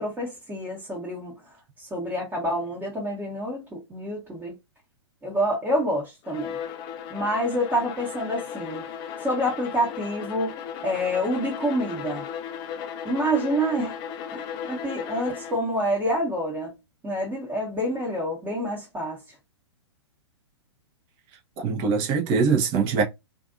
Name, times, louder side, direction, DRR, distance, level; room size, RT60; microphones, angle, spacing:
voice 1, 0.0-1.3 1.8-4.5 5.2-6.6 7.1-8.8 9.2-10.6 10.8-12.2 13.0-13.9 14.3-16.7 17.0-19.2, equal, 15° right, 1.1 m, -27 dB
Bowed string instrument, 6.2-15.7, left 8 dB, 30° left, 0.4 m, -36 dB
voice 2, 21.6-23.0, right 5 dB, 35° right, 0.8 m, -22 dB
2.6 x 2.5 x 2.4 m
figure-of-eight pair, 110°, 15 cm